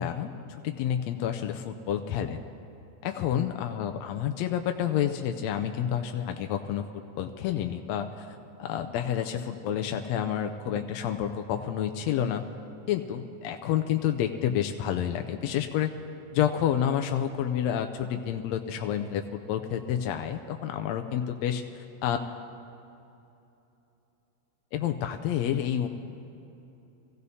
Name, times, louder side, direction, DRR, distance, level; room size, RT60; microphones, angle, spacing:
voice 1, 0.0-2.4 3.0-8.3 8.6-12.4 12.9-15.9 16.3-21.6 22.0-22.2 24.7-25.9, left 9 dB, 75° left, 6 dB, 1.7 m, -29 dB
25.5 x 17.0 x 2.8 m, 2.8 s
omnidirectional pair, 3.5 m